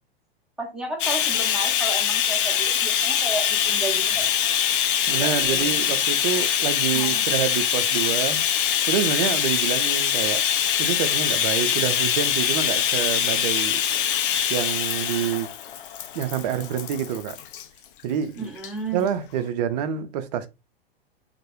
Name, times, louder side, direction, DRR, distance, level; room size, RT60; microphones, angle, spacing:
voice 1, 0.6-4.3 5.2-5.7 6.9-7.3 18.4-19.1, right 2 dB, ahead, 0.6 m, -33 dB
Bathtub (filling or washing), 1.0-17.6 18.6-18.7 19.1-19.2, left 9 dB, 60° left, 0.5 m, -23 dB
voice 2, 5.1-8.4 8.9-10.4 10.8-13.8 14.5-15.5 16.1-17.4 18.0-18.5 18.9-20.5, right 9 dB, 45° right, 0.4 m, -27 dB
2.2 x 2.1 x 2.9 m
figure-of-eight pair, 100°, 31 cm